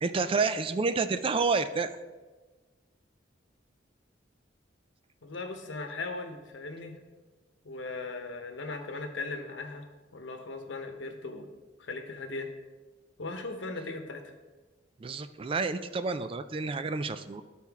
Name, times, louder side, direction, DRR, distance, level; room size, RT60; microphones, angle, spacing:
voice 1, 0.0-1.9 15.0-17.4, right 4 dB, 30° right, 11 dB, 0.3 m, -29 dB
voice 2, 5.2-6.9 7.6-9.8 10.1-11.5 11.8-12.5 13.2-14.2, left 3 dB, 85° left, 5 dB, 0.9 m, -38 dB
12.5 x 4.3 x 3.5 m, 1.3 s
head